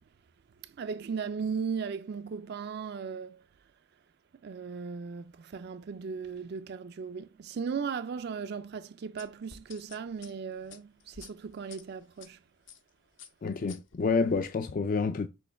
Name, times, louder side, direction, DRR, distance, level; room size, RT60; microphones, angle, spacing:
voice 1, 0.8-3.4 4.4-12.4, right 5 dB, 55° right, 0.4 m, -37 dB
sound 1, 9.2-12.3 12.7-12.9 13.2-14.5, left 7 dB, 65° left, 0.9 m, -51 dB
voice 2, 13.4-15.3, left 4 dB, 45° left, 0.4 m, -28 dB
6.3 x 3.0 x 5.7 m
head